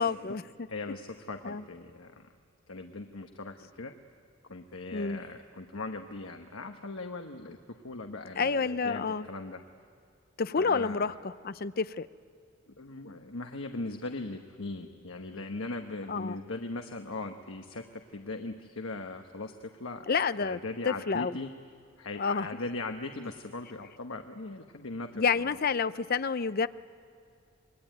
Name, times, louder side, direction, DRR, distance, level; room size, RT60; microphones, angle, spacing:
voice 1, 0.0-0.7 1.4-1.6 4.9-5.2 8.4-9.3 10.4-12.1 16.1-16.4 20.1-20.6 20.8-21.4 22.2-22.5 25.1-26.7, left 5 dB, 45° left, 14 dB, 0.6 m, -29 dB
voice 2, 0.7-2.3 2.7-3.9 4.5-9.6 10.5-11.1 12.7-17.8 18.1-20.1 20.4-21.5 22.0-25.2, left 2 dB, 75° left, 5 dB, 1.2 m, -39 dB
26.0 x 21.5 x 9.3 m, 2.4 s
head